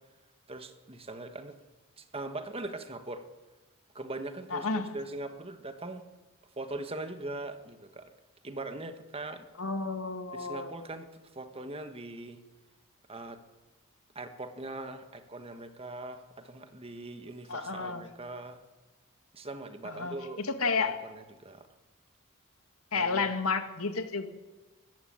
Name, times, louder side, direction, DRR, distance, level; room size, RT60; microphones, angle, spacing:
voice 1, 0.5-1.6 2.0-3.2 3.9-6.0 6.6-8.1 8.4-9.5 10.3-11.1 11.3-12.4 13.1-13.4 14.1-18.6 19.3-20.4 20.8-21.7 22.9-23.3, right 2 dB, 25° right, 8 dB, 1.5 m, -41 dB
voice 2, 4.5-4.9 9.6-10.9 17.5-18.1 19.8-21.0 22.9-24.3, left 4 dB, 75° left, 7 dB, 2.0 m, -31 dB
22.0 x 14.0 x 8.9 m, 1.2 s
head